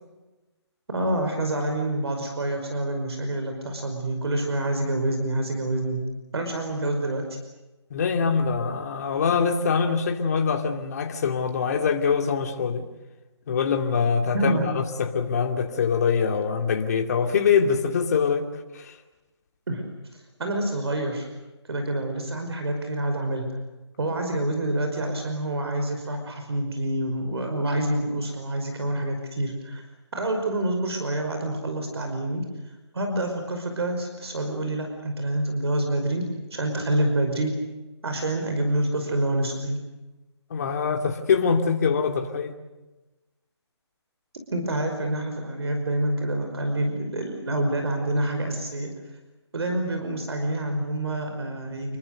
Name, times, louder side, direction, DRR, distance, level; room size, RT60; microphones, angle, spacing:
voice 1, 0.9-6.0 6.3-7.3 14.3-14.7 19.7-19.9 20.4-21.3 21.7-23.5 24.0-29.9 30.1-32.5 32.9-37.6 38.0-39.8 44.5-48.9 49.5-52.0, right 1 dB, 65° right, 4 dB, 5.4 m, -27 dB
voice 2, 7.9-12.9 13.5-18.5 18.7-19.0 40.5-42.5, left 6 dB, 35° left, 4 dB, 2.7 m, -24 dB
29.0 x 22.5 x 6.7 m, 1.1 s
hypercardioid pair, 160°, 15 cm